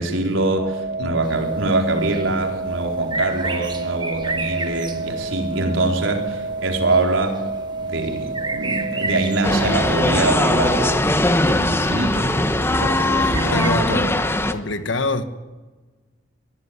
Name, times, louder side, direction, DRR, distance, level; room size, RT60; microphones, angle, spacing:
voice 1, 0.0-7.4 7.7-10.9 11.3-12.3 12.8-14.0, right 2 dB, 90° right, 3 dB, 4.3 m, -24 dB
sound 1, 0.6-11.0, right 3 dB, 60° right, 1.5 m, -30 dB
sound 2, 1.2-13.7, right 3 dB, 25° right, 1.6 m, -34 dB
sound 3, 9.4-14.5, left 1 dB, 10° left, 1.0 m, -20 dB
voice 2, 13.2-14.2 14.5-15.2, left 2 dB, 75° left, 11 dB, 1.5 m, -26 dB
22.5 x 16.0 x 9.7 m, 1.3 s
head